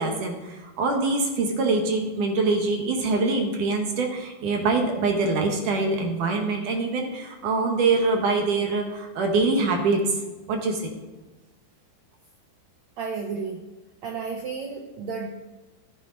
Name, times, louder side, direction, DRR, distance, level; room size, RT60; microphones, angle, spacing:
voice 1, 0.0-10.1 10.5-10.9, right 3 dB, 60° right, 2 dB, 2.7 m, -24 dB
voice 2, 13.0-13.7 14.0-15.3, right 5 dB, 90° right, 3 dB, 1.5 m, -32 dB
13.0 x 12.0 x 4.0 m, 1.2 s
omnidirectional pair, 4.7 m